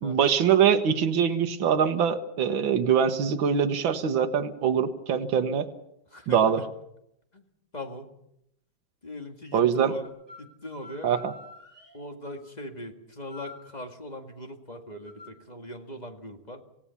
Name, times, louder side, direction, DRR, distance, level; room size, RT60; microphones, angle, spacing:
voice 1, 0.0-5.7 6.3-6.6 9.5-9.9 11.0-11.3, right 7 dB, 90° right, 6 dB, 1.9 m, -23 dB
voice 2, 6.1-6.7 7.3-7.5 7.7-8.1 9.0-10.1 10.4-11.1 11.9-16.6, left 1 dB, 20° left, 4 dB, 2.0 m, -40 dB
sound 1, 10.0-10.4 10.8-12.0 13.2-13.6 15.0-15.3, left 3 dB, 10° right, 5.7 m, -47 dB
26.5 x 17.0 x 7.1 m, 0.78 s
omnidirectional pair, 2.1 m